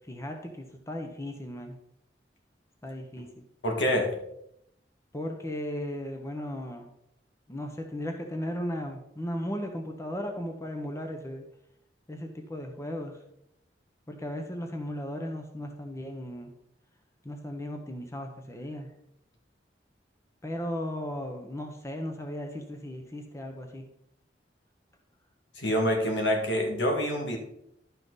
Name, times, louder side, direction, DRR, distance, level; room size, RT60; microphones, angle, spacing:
voice 1, 0.0-1.8 2.8-3.4 5.1-6.9 7.5-11.4 12.1-13.2 14.1-16.5 17.2-18.9 20.4-23.8, left 1 dB, 15° left, 4 dB, 0.9 m, -36 dB
voice 2, 3.6-4.1 25.6-27.4, equal, 80° left, 1 dB, 2.1 m, -26 dB
12.0 x 5.8 x 4.0 m, 0.79 s
head